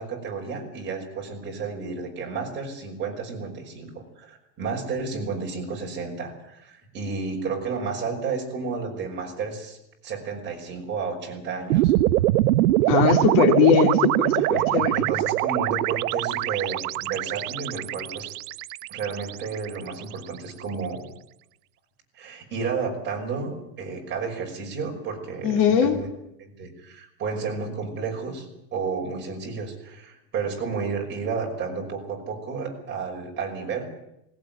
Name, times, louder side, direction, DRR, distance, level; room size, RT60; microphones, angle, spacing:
voice 1, 0.0-9.8 10.0-11.9 14.3-18.4 18.9-21.0 22.1-26.1 26.4-34.0, right 5 dB, 25° right, 0 dB, 5.6 m, -32 dB
sound 1, 11.7-20.0, right 16 dB, 85° right, 0.9 m, -23 dB
voice 2, 12.9-15.0 25.4-26.0, left 8 dB, 50° left, 4 dB, 3.6 m, -20 dB
20.0 x 17.5 x 9.2 m, 0.82 s
supercardioid pair, 160°, 45 cm